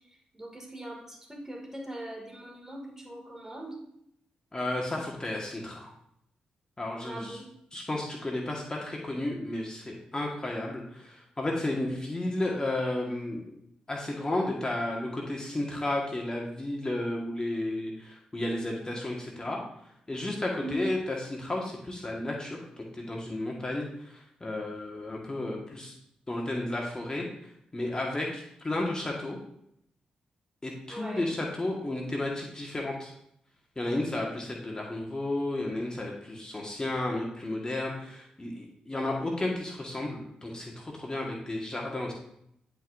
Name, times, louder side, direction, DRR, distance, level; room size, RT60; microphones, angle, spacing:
voice 1, 0.3-3.8 7.0-7.4 20.6-20.9 30.9-31.3, right 1 dB, 15° right, 0 dB, 2.3 m, -40 dB
voice 2, 4.5-5.9 6.8-7.4 7.7-13.5 13.9-19.6 20.1-25.9 26.3-27.3 27.7-29.4 30.6-33.1 33.7-42.1, left 1 dB, 25° left, -2 dB, 1.6 m, -33 dB
10.0 x 4.7 x 2.6 m, 0.75 s
supercardioid pair, 45°, 3 cm